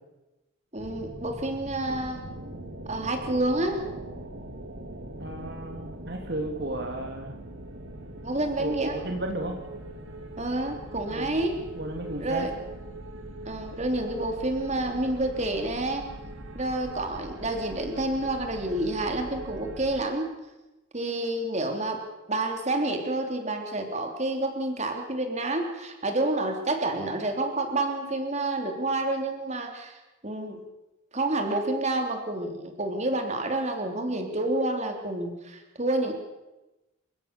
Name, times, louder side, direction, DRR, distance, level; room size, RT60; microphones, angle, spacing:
voice 1, 0.7-2.2 2.9-3.8 8.2-9.0 10.4-11.6 12.2-12.5 13.4-16.0 16.5-20.3 20.9-22.0 22.3-30.0 30.2-30.6 31.1-36.1, right 2 dB, 35° right, 4 dB, 3.2 m, -29 dB
sound 1, 0.8-20.0, right 1 dB, 80° right, 2.5 m, -41 dB
voice 2, 5.2-7.4 8.6-9.6 11.1-11.5 11.7-12.5, right 1 dB, 55° right, 3 dB, 2.6 m, -34 dB
28.5 x 16.0 x 6.8 m, 1.0 s
head